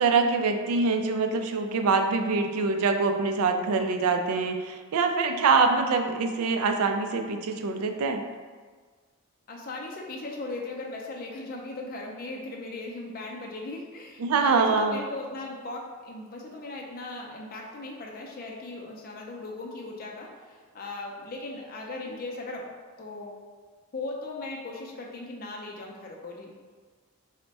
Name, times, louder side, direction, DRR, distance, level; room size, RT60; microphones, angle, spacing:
voice 1, 0.0-8.3 14.2-15.0, right 4 dB, 80° right, 6 dB, 0.4 m, -24 dB
voice 2, 9.5-22.6 23.0-23.3 23.9-26.5, left 2 dB, 40° left, -1 dB, 0.4 m, -38 dB
3.3 x 2.1 x 4.0 m, 1.5 s
head